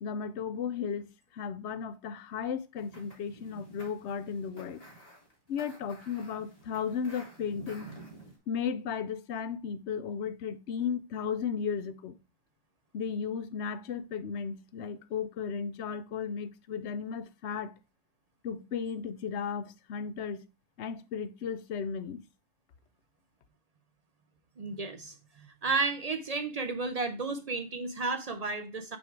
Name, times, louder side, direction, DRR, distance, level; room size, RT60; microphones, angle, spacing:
voice 1, 0.0-4.8 5.5-7.9 8.5-12.2 12.9-17.7 18.4-20.4 20.8-22.2, left 6 dB, 75° left, 0.9 m, -35 dB
sound 1, 2.8-8.4, right 1 dB, 30° left, 2.1 m, -51 dB
voice 2, 24.6-25.1 25.6-29.0, right 3 dB, 45° right, 0.5 m, -32 dB
6.1 x 3.6 x 4.5 m
omnidirectional pair, 1.2 m